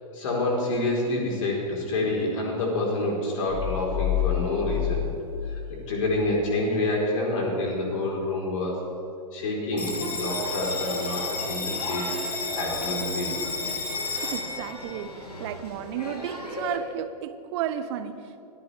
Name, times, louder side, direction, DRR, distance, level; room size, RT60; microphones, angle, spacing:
voice 1, 0.1-5.0 5.7-8.8 9.3-12.1 12.5-13.4, left 2 dB, 55° left, -2 dB, 4.3 m, -27 dB
sound 1, 3.5-6.3, left 13 dB, 35° left, 2.5 m, -29 dB
Bell, 9.8-16.8, left 3 dB, 75° left, 2.6 m, -32 dB
voice 2, 14.2-18.4, right 9 dB, 45° right, 12 dB, 1.1 m, -33 dB
24.5 x 15.0 x 3.5 m, 2.8 s
figure-of-eight pair, 100°, 20 cm